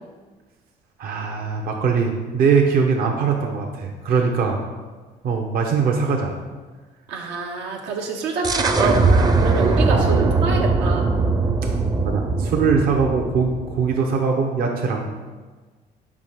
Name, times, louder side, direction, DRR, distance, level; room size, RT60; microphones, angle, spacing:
voice 1, 1.0-4.6 5.2-6.4 9.9-10.3 12.0-15.1, right 5 dB, 60° right, 1 dB, 0.8 m, -21 dB
voice 2, 7.1-11.0, right 3 dB, 90° right, 1 dB, 1.0 m, -26 dB
sound 1, 8.4-13.9, right 3 dB, 25° right, 0.5 m, -20 dB
4.9 x 4.5 x 5.7 m, 1.3 s
cardioid pair, 110°, 17 cm